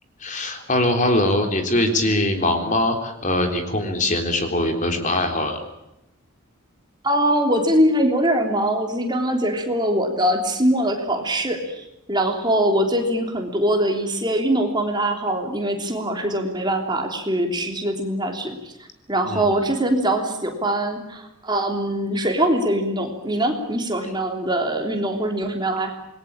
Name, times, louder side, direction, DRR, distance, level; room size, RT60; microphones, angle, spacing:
voice 1, 0.2-5.6 19.2-19.5, left 1 dB, 35° left, 5 dB, 3.7 m, -22 dB
voice 2, 7.0-18.7 19.1-25.9, right 1 dB, 20° right, 3 dB, 3.4 m, -22 dB
27.5 x 21.5 x 8.8 m, 0.88 s
head